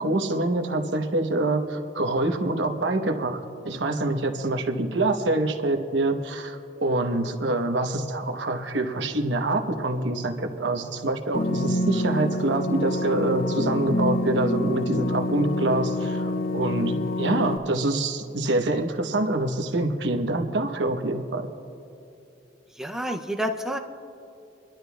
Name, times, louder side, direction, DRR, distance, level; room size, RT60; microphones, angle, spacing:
voice 1, 0.0-21.5, right 2 dB, 70° right, 4 dB, 1.0 m, -26 dB
sound 1, 11.3-17.6, left 1 dB, 50° left, 0.4 m, -27 dB
voice 2, 22.8-23.8, equal, 5° right, 3 dB, 0.5 m, -29 dB
26.0 x 12.0 x 2.3 m, 2.7 s
head